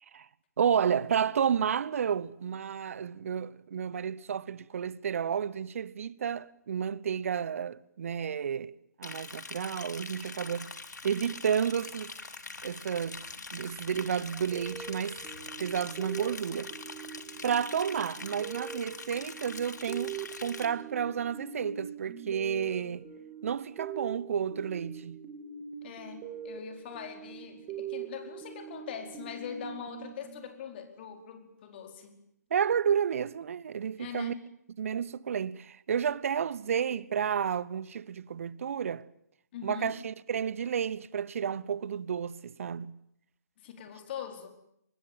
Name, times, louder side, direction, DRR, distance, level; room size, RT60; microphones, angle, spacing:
voice 1, 0.6-8.7 9.0-10.7 11.0-12.1 12.6-13.2 13.5-15.2 15.6-16.7 17.4-23.1 23.4-25.2 32.5-34.3 34.8-39.0 39.6-42.9, right 8 dB, 50° right, 1.0 m, -31 dB
Liquid, 9.0-20.7, left 3 dB, 75° left, 2.6 m, -43 dB
sound 1, 14.5-30.9, right 8 dB, 20° right, 3.1 m, -43 dB
voice 2, 25.8-32.2 34.0-34.4 39.5-40.0 43.6-44.5, left 8 dB, 35° left, 4.6 m, -42 dB
24.5 x 20.5 x 9.1 m
figure-of-eight pair, 140°, 9 cm